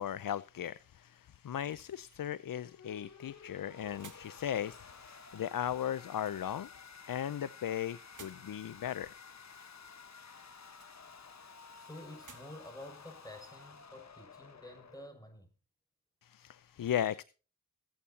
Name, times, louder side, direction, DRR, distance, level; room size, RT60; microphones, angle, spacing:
voice 1, 0.0-6.7 7.1-9.1 16.2-17.2, left 10 dB, 65° left, 0.6 m, -37 dB
sound 1, 1.1-14.3, right 5 dB, 55° right, 2.2 m, -63 dB
sound 2, 2.5-15.1, left 5 dB, 50° left, 1.3 m, -53 dB
voice 2, 9.5-10.0 11.7-15.5, left 1 dB, 10° left, 6.9 m, -50 dB
23.0 x 8.6 x 2.8 m
cardioid pair, 45°, 36 cm